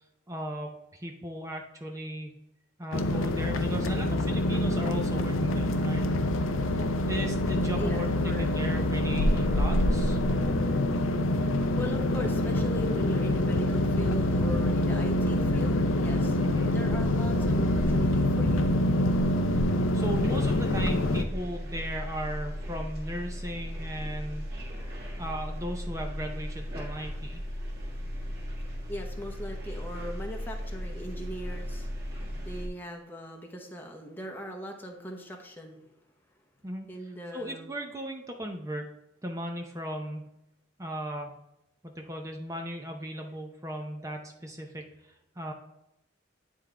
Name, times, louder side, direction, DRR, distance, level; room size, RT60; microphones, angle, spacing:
voice 1, 0.3-2.4 2.8-6.1 7.1-10.2 16.4-16.7 19.9-24.5 25.2-27.4 36.6-36.9 37.3-38.9 39.2-40.3 40.8-41.3 41.8-45.5, equal, 15° right, 2 dB, 0.6 m, -37 dB
sound 1, 2.9-21.2, left 1 dB, 85° left, 0.5 m, -26 dB
voice 2, 7.8-8.5 11.4-16.4 16.7-19.0 28.9-31.9 32.4-35.9 36.9-37.7, equal, 10° left, 2 dB, 0.8 m, -39 dB
sound 2, 20.1-32.7, equal, 50° right, 1.7 m, -36 dB
10.0 x 3.7 x 3.4 m, 0.86 s
head